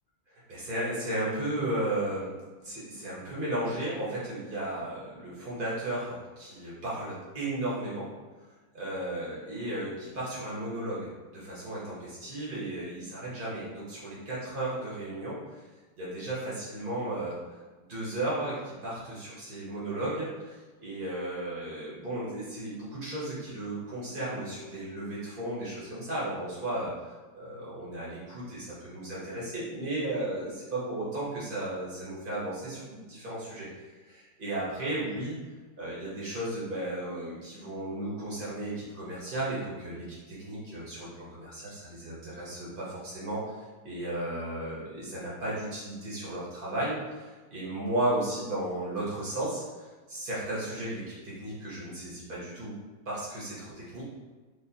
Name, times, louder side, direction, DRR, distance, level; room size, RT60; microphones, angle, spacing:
voice 1, 0.3-8.1 8.7-15.6 16.0-17.3 17.8-35.4 35.8-52.7 53.0-54.1, right 1 dB, 65° right, -7 dB, 0.5 m, -35 dB
5.1 x 2.0 x 2.7 m, 1.3 s
omnidirectional pair, 2.3 m